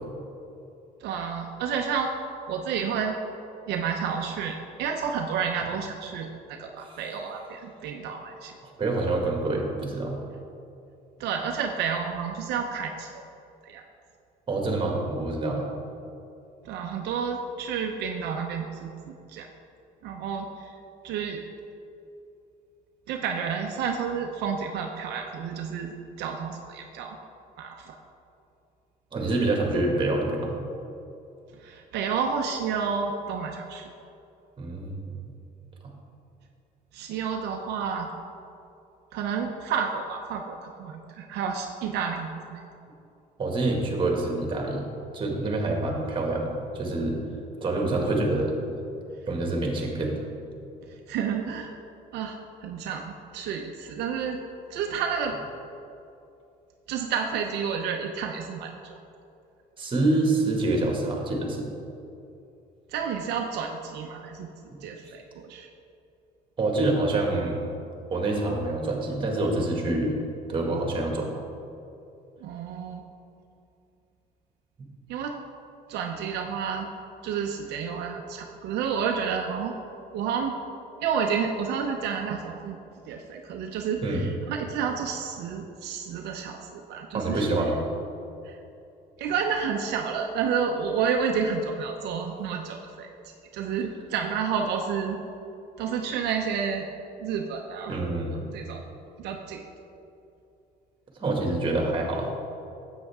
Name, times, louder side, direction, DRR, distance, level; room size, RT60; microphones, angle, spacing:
voice 1, 1.0-2.1 2.5-3.2 3.7-8.5 11.2-13.2 13.6-13.8 16.6-19.5 20.0-20.8 21.0-21.4 23.1-27.2 27.6-27.9 31.6-33.9 36.9-38.1 39.1-42.6 50.8-51.8 52.1-54.4 54.7-55.4 56.9-58.9 62.9-64.5 64.8-65.7 72.4-73.0 75.1-75.3 75.9-76.9 77.2-79.7 80.1-80.5 81.0-82.8 83.1-87.5 88.4-88.6 89.2-95.2 95.8-96.9 97.2-98.8 99.2-99.6, right 6 dB, 80° right, 2 dB, 0.7 m, -30 dB
voice 2, 8.8-10.2 14.5-15.6 29.1-30.5 34.6-35.2 43.4-44.9 45.1-47.2 47.6-48.5 49.3-50.1 59.8-61.7 66.6-67.6 68.1-70.2 70.5-71.3 84.0-84.2 87.1-87.8 97.9-98.5 101.2-102.3, right 2 dB, 30° right, 0 dB, 2.0 m, -26 dB
10.0 x 8.2 x 3.6 m, 2.7 s
cardioid pair, 110°, 17 cm